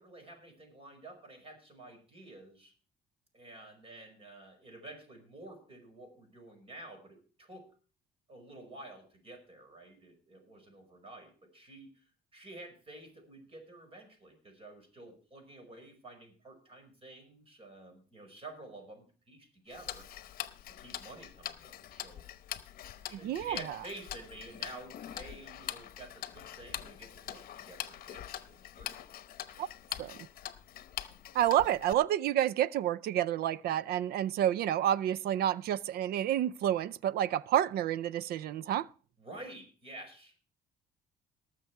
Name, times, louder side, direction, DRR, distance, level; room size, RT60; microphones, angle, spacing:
voice 1, 0.0-2.7 3.3-7.7 8.3-11.9 12.3-20.1 20.7-22.2 23.1-29.0 39.2-40.3, right 2 dB, 35° right, 5.3 m, -50 dB
Tick-tock, 19.7-31.9, left 11 dB, 60° left, 0.9 m, -43 dB
voice 2, 23.1-23.8 29.6-29.7 30.0-30.2 31.3-38.9, right 11 dB, 65° right, 0.5 m, -29 dB
18.5 x 6.7 x 4.6 m
cardioid pair, 110°, 17 cm